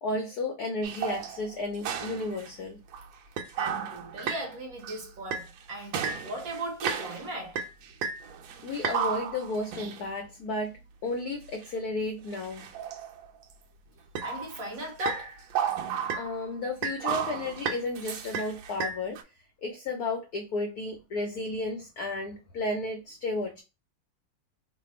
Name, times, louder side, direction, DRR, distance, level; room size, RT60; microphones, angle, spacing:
voice 1, 0.0-2.8 8.6-10.7 11.0-12.6 16.2-19.2 19.6-23.6, left 2 dB, 70° left, 0.9 m, -33 dB
sound 1, 0.8-2.5 2.9-3.1 3.4-4.5 4.8-5.0 5.3-5.6 5.9-7.3 7.6-10.1 11.5-11.7 12.3-13.5 14.1-14.6 15.0-16.5 16.8-19.2, right 7 dB, 75° right, 1.3 m, -33 dB
voice 2, 3.6-7.6 14.2-15.5, right 1 dB, 55° right, 1.2 m, -37 dB
3.3 x 2.3 x 4.1 m
omnidirectional pair, 2.3 m